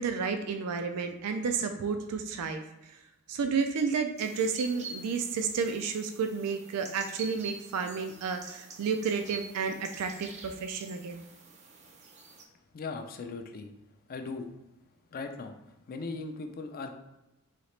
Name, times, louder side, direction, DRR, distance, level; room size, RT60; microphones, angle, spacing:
voice 1, 0.0-2.6 3.3-11.2, right 5 dB, 90° right, 6 dB, 0.4 m, -31 dB
sound 1, 4.2-12.5, right 5 dB, 30° right, 0.5 m, -46 dB
voice 2, 12.7-13.7 14.1-14.5 15.1-15.5 15.9-16.9, left 3 dB, 40° left, 6 dB, 0.4 m, -38 dB
4.1 x 2.8 x 3.2 m, 0.95 s
head